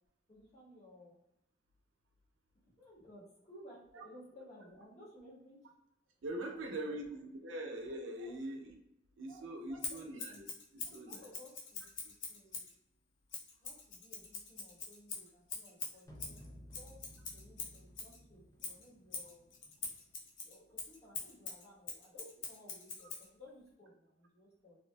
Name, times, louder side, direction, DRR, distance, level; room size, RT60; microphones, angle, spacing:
voice 1, 0.3-1.2 2.8-5.6 6.5-7.5 8.2-8.4 9.2-10.1 10.8-11.9 12.3-12.7 13.6-17.0 17.3-19.5 20.4-24.8, left 1 dB, 35° left, -8 dB, 1.2 m, -58 dB
voice 2, 6.2-8.7 9.2-11.2 12.0-12.1, right 1 dB, 75° right, 3 dB, 0.5 m, -43 dB
Scissors, 9.8-12.7 13.3-18.2 18.6-23.3, left 4 dB, 70° left, 0.6 m, -44 dB
sound 1, 16.1-20.1, equal, 15° left, 0.4 m, -56 dB
2.7 x 2.4 x 2.2 m, 0.83 s
head